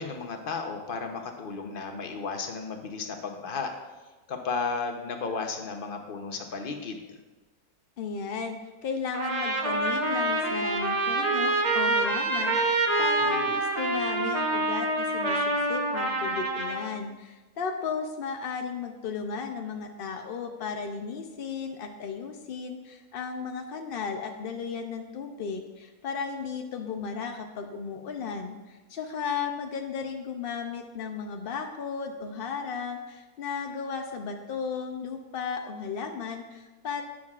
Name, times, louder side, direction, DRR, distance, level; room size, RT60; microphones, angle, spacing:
voice 1, 0.0-3.7 4.3-7.0 13.2-13.5, left 4 dB, 45° left, 4 dB, 0.8 m, -34 dB
voice 2, 8.0-15.4 15.7-37.0, left 5 dB, 75° left, 5 dB, 0.5 m, -35 dB
Trumpet, 9.1-16.9, right 2 dB, 35° right, 0.7 m, -26 dB
11.0 x 8.7 x 2.4 m, 1.2 s
omnidirectional pair, 1.7 m